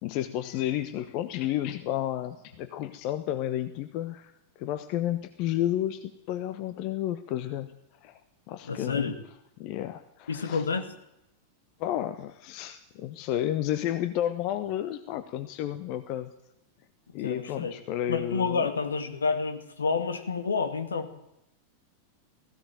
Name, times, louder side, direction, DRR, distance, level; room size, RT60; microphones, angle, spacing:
voice 1, 0.0-4.3 4.6-7.7 8.0-8.2 8.5-9.1 9.6-10.6 11.8-16.3 17.1-18.7, left 12 dB, 45° left, 11 dB, 1.1 m, -31 dB
voice 2, 8.6-9.2 10.3-10.9 17.2-17.8 18.1-21.1, left 5 dB, 70° left, 8 dB, 2.2 m, -29 dB
18.0 x 16.0 x 9.2 m, 0.86 s
figure-of-eight pair, 90°, 0 cm